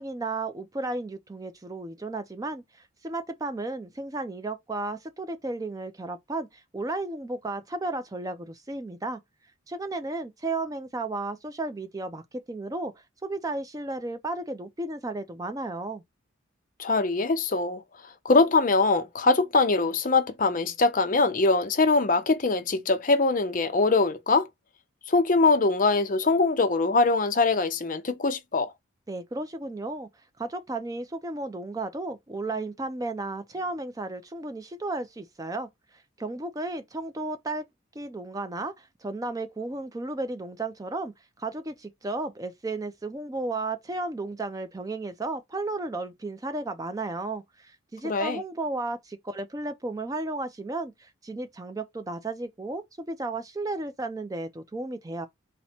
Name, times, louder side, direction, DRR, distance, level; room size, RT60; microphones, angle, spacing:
voice 1, 0.0-9.2 9.7-16.0 29.1-30.1 30.4-37.7 38.0-55.3, right 2 dB, 15° right, 0.4 m, -34 dB
voice 2, 16.8-17.8 18.2-24.5 25.1-28.7 48.0-48.4, left 3 dB, 40° left, 0.6 m, -23 dB
4.2 x 2.1 x 4.2 m
head